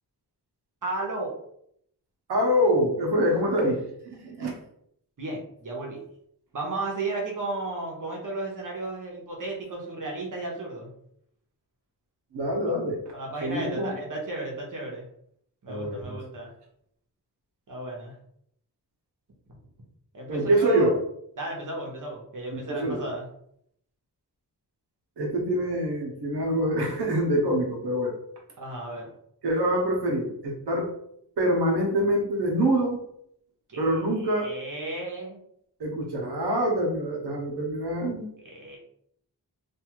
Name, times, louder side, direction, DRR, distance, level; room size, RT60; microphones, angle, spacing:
voice 1, 0.8-1.3 5.2-6.0 6.5-10.9 13.1-15.1 15.6-16.5 17.7-18.1 20.1-20.9 21.4-23.3 28.6-29.1 33.7-33.8 34.2-35.4 38.4-38.8, right 2 dB, 50° right, -1 dB, 1.0 m, -34 dB
voice 2, 2.3-4.6 12.3-13.0 13.4-14.0 15.7-16.2 20.3-21.0 22.5-23.0 25.2-28.1 29.4-30.9 31.4-33.0 33.8-34.5 35.8-38.3, equal, 90° right, 0 dB, 0.9 m, -25 dB
2.6 x 2.4 x 3.0 m, 0.70 s
wide cardioid pair, 75°, 39 cm